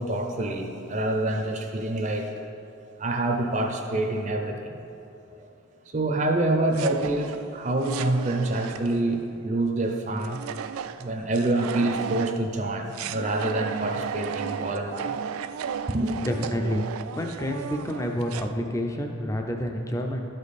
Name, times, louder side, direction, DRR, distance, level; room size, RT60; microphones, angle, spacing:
voice 1, 0.0-2.3 3.0-4.8 5.4-5.5 5.9-10.4 11.0-15.1 15.9-16.1, right 2 dB, 35° right, 3 dB, 0.6 m, -26 dB
sound 1, 6.7-9.2 10.2-12.5 12.9-18.5, right 7 dB, 90° right, 0.3 m, -35 dB
voice 2, 16.2-16.8 17.1-20.3, equal, 15° left, 3 dB, 0.5 m, -28 dB
12.0 x 5.2 x 4.2 m, 2.8 s
head